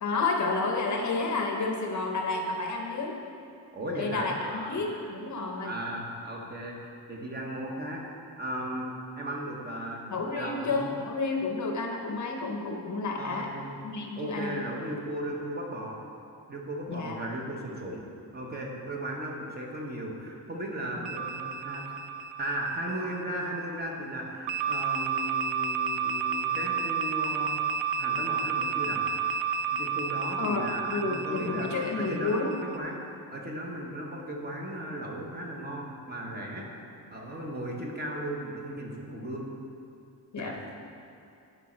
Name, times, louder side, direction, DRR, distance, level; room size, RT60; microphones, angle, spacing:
voice 1, 0.0-3.2 4.0-5.8 10.1-13.5 13.8-14.6 16.9-17.3 20.8-20.9 30.4-32.5 40.3-40.6, left 3 dB, 45° left, 2 dB, 0.8 m, -30 dB
voice 2, 3.7-4.8 5.6-8.0 8.4-10.9 13.2-13.8 14.2-16.0 16.5-18.1 18.3-21.9 22.4-27.7 28.0-29.1 29.7-36.7 37.1-39.5 40.4-40.6, right 1 dB, 25° right, -1 dB, 1.0 m, -36 dB
sound 1, 21.0-23.6 24.5-32.8, right 6 dB, 75° right, 0.7 m, -31 dB
11.0 x 5.1 x 4.4 m, 2.7 s
wide cardioid pair, 160°, 42 cm